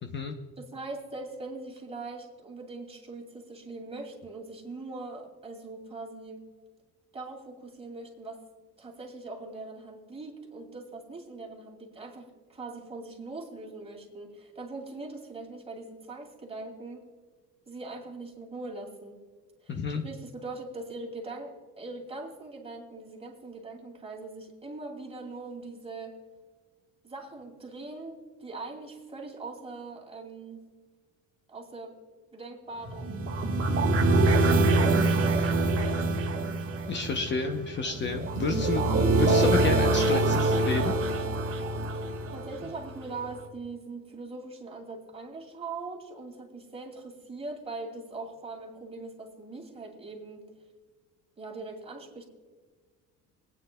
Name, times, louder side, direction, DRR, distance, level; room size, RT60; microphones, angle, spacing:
voice 1, 0.0-0.3 19.7-20.0 36.9-41.0, left 4 dB, 35° left, 4 dB, 0.8 m, -30 dB
voice 2, 0.6-6.4 7.1-8.4 8.8-17.0 17.7-19.2 19.6-19.8 20.0-26.2 27.0-30.6 31.5-32.0 32.3-33.3 34.2-36.0 38.7-38.9 42.3-50.4 51.4-52.3, right 3 dB, 20° right, 0 dB, 2.4 m, -41 dB
sound 1, 32.9-42.9, right 2 dB, 40° right, 1.5 m, -25 dB
26.5 x 9.2 x 2.2 m, 1.5 s
cardioid pair, 130°, 32 cm